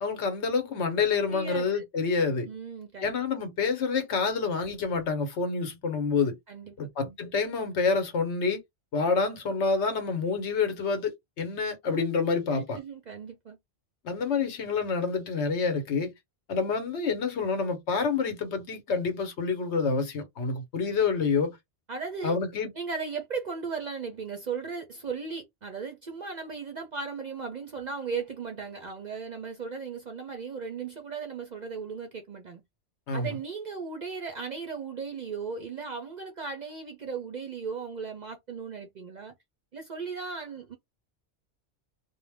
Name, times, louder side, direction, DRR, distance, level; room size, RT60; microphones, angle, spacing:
voice 1, 0.0-2.5 3.0-6.4 6.8-8.6 8.9-12.8 14.0-16.1 16.5-21.6 22.2-22.7 33.1-33.3, left 4 dB, 70° left, 1.1 m, -28 dB
voice 2, 1.3-1.8 2.5-3.1 6.5-7.2 12.5-13.6 21.9-22.4 22.7-32.6 33.1-39.3 39.7-40.8, right 5 dB, 50° right, 0.5 m, -37 dB
2.5 x 2.1 x 3.3 m
omnidirectional pair, 1.2 m